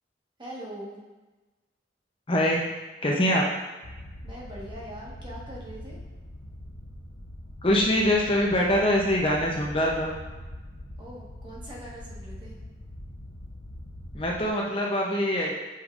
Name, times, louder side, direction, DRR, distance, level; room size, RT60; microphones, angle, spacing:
voice 1, 0.4-1.0 4.2-6.0 11.0-12.6, right 1 dB, 25° right, -4 dB, 1.3 m, -42 dB
voice 2, 2.3-2.6 3.0-3.4 7.6-10.2 14.1-15.5, left 1 dB, 30° left, -2 dB, 0.7 m, -23 dB
sound 1, 3.8-14.5, left 1 dB, 70° left, 0.7 m, -42 dB
8.3 x 5.2 x 2.5 m, 1.2 s
head